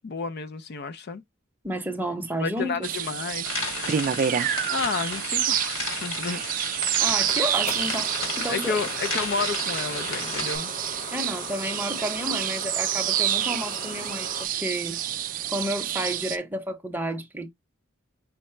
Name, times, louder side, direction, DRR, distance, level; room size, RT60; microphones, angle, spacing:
voice 1, 0.0-1.2 2.4-3.6 4.7-6.4 8.5-10.7, left 5 dB, 50° left, 0.4 m, -31 dB
voice 2, 1.6-2.9 7.0-8.8 11.1-15.0 15.5-17.5, right 1 dB, 10° right, 0.7 m, -31 dB
sound 1, 2.8-16.4, right 11 dB, 40° right, 0.3 m, -28 dB
sound 2, 3.4-10.6, left 3 dB, 70° left, 2.4 m, -33 dB
sound 3, 6.5-14.5, left 2 dB, 35° left, 0.9 m, -39 dB
5.7 x 2.0 x 4.3 m
head